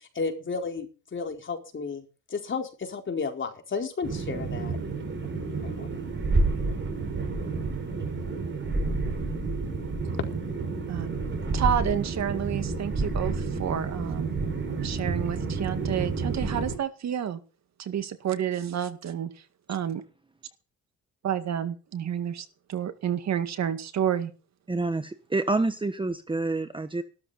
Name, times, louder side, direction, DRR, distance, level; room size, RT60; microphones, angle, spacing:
voice 1, 0.1-2.0 2.3-4.8 5.6-5.9, left 4 dB, 40° left, 4.5 m, -32 dB
sound 1, 4.0-16.8, right 3 dB, 40° right, 5.9 m, -30 dB
voice 2, 11.5-14.4 14.8-17.4 17.8-19.3 19.7-20.0 21.2-24.3, right 9 dB, 60° right, 2.0 m, -30 dB
voice 3, 24.7-27.0, right 3 dB, 15° right, 1.3 m, -28 dB
15.5 x 13.0 x 4.2 m
cardioid pair, 90°, 30 cm